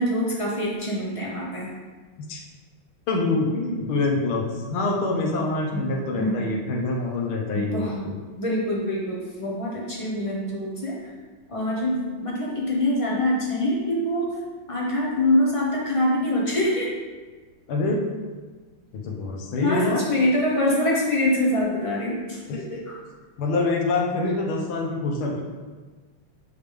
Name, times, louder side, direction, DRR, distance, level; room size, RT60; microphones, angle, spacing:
voice 1, 0.0-1.7 5.7-5.9 6.2-6.4 7.5-7.9 8.4-11.0 11.5-11.9 12.2-14.3 14.7-16.9 19.6-22.4 22.7-23.0, left 1 dB, 30° left, -4 dB, 0.6 m, -24 dB
voice 2, 3.1-8.2 17.7-18.0 19.0-20.0 22.5-22.6 23.4-25.4, left 3 dB, 80° left, -1 dB, 1.8 m, -25 dB
9.3 x 3.4 x 3.4 m, 1.4 s
omnidirectional pair, 2.4 m